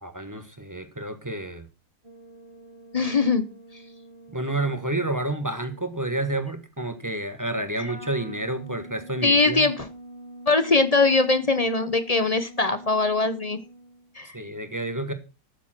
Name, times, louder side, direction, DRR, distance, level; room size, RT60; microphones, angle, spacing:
voice 1, 0.0-1.6 4.3-9.7 14.3-15.1, right 2 dB, 10° right, 8 dB, 1.3 m, -29 dB
sound 1, 2.0-6.1 7.9-14.2, right 1 dB, 35° right, 2.7 m, -45 dB
voice 2, 2.9-3.5 7.8-7.9 9.2-9.9 10.5-13.6 14.1-14.3, left 3 dB, 40° left, 11 dB, 0.5 m, -21 dB
13.5 x 7.4 x 6.0 m, 0.32 s
omnidirectional pair, 2.0 m